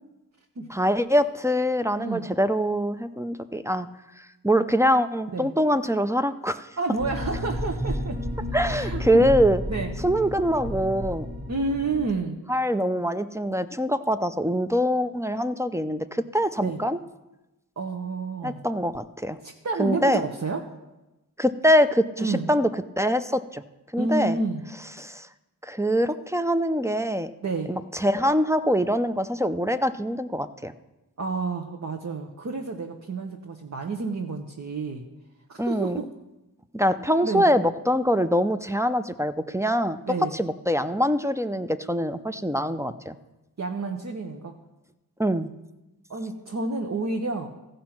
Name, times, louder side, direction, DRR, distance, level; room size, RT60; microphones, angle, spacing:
voice 1, 0.7-3.9 4.2-6.7 8.5-9.6 10.0-11.3 12.5-17.0 18.4-19.4 19.8-20.2 21.4-22.7 23.0-23.6 23.9-24.4 25.0-25.3 25.6-27.3 27.7-30.7 35.6-36.0 36.7-40.0 40.3-43.2 45.2-45.5, equal, 10° right, 10 dB, 0.5 m, -24 dB
voice 2, 2.0-2.3 5.3-5.5 6.8-8.2 8.6-9.3 9.7-9.9 11.5-12.4 16.6-16.8 17.8-18.6 19.4-20.6 22.2-22.5 24.0-24.6 27.4-27.7 31.2-35.0 35.5-36.0 37.2-37.5 40.1-40.3 43.6-44.6 46.1-47.5, right 3 dB, 50° right, 2 dB, 1.0 m, -30 dB
sound 1, 7.0-12.1, equal, 75° right, 1.9 m, -31 dB
15.0 x 5.2 x 5.9 m, 1.0 s
cardioid pair, 55°, 36 cm